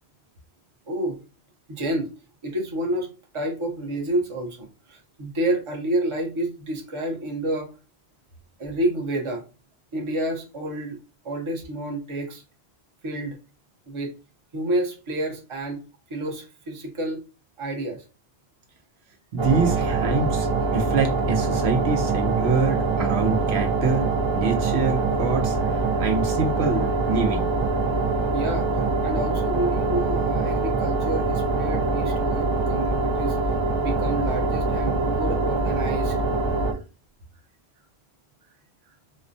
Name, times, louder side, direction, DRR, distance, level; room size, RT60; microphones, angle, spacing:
voice 1, 0.9-1.2 1.7-2.1 2.4-7.7 8.6-9.4 9.9-11.0 11.2-12.4 13.0-13.4 13.9-14.1 14.5-15.8 16.1-17.2 17.6-18.0 28.3-33.4 33.7-36.2, right 1 dB, 30° right, 1 dB, 0.8 m, -29 dB
voice 2, 19.3-27.5, right 4 dB, 70° right, 3 dB, 0.9 m, -25 dB
sound 1, 19.4-36.7, right 3 dB, 45° right, 0.3 m, -24 dB
4.1 x 2.1 x 2.6 m, 0.32 s
omnidirectional pair, 1.1 m